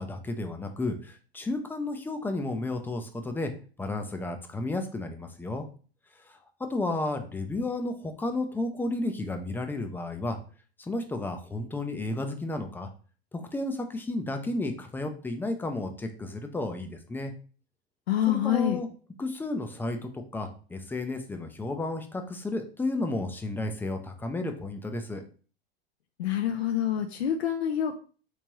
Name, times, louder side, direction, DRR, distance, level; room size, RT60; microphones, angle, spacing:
voice 1, 0.0-3.5 3.8-5.7 6.3-6.4 6.7-10.4 10.8-12.9 13.3-17.3 18.3-18.9 19.2-25.2, left 2 dB, 5° left, 6 dB, 0.4 m, -32 dB
voice 2, 18.1-18.8 26.2-28.0, left 10 dB, 85° left, 4 dB, 0.5 m, -26 dB
3.4 x 3.1 x 2.9 m, 0.39 s
hypercardioid pair, 100°, 31 cm